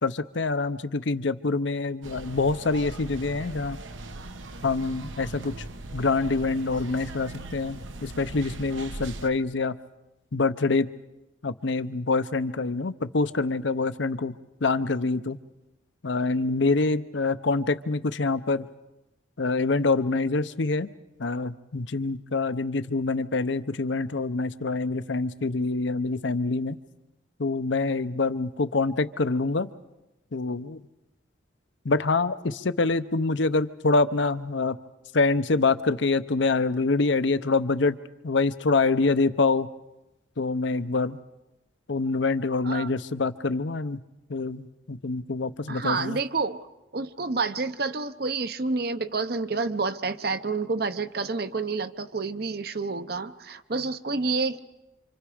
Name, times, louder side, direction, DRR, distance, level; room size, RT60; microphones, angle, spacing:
voice 1, 0.0-3.8 4.6-5.6 5.9-9.8 10.3-10.9 11.4-14.3 14.6-15.4 16.0-18.6 19.4-20.9 21.2-26.8 27.4-29.7 30.3-30.8 31.8-34.8 35.1-38.0 38.2-39.7 40.4-41.2 41.9-44.0 44.3-46.2, left 3 dB, 70° left, 12 dB, 0.7 m, -25 dB
sound 1, 2.0-9.3, right 2 dB, 80° right, 1.2 m, -40 dB
voice 2, 45.7-46.7 46.9-54.6, right 4 dB, 50° right, 11 dB, 0.8 m, -29 dB
27.5 x 26.0 x 5.0 m, 0.97 s
head